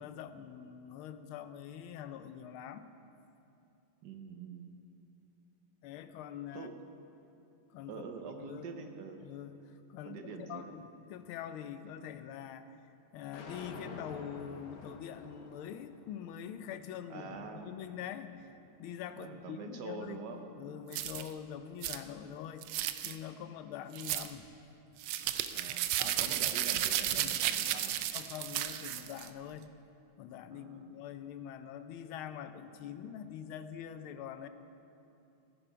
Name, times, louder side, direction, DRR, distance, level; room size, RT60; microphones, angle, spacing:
voice 1, 0.0-2.9 5.8-6.7 7.7-8.0 8.4-8.6 9.2-12.8 13.1-18.3 18.8-20.2 20.6-22.7 23.0-24.5 26.0-26.4 27.2-27.4 28.1-29.7 30.2-34.5, left 9 dB, 90° left, 11 dB, 1.5 m, -44 dB
voice 2, 4.0-4.7 6.5-6.7 7.9-9.2 10.0-10.8 17.1-17.7 19.2-20.8 25.5-28.0 30.5-31.0, right 5 dB, 60° right, 5 dB, 1.3 m, -45 dB
sound 1, 13.3-19.5, left 3 dB, 50° left, 1.3 m, -51 dB
sound 2, 20.9-21.3 21.8-22.0 22.6-23.1 24.0-24.3 25.0-29.3, right 12 dB, 80° right, 1.4 m, -33 dB
16.0 x 10.0 x 5.0 m, 2.7 s
omnidirectional pair, 2.2 m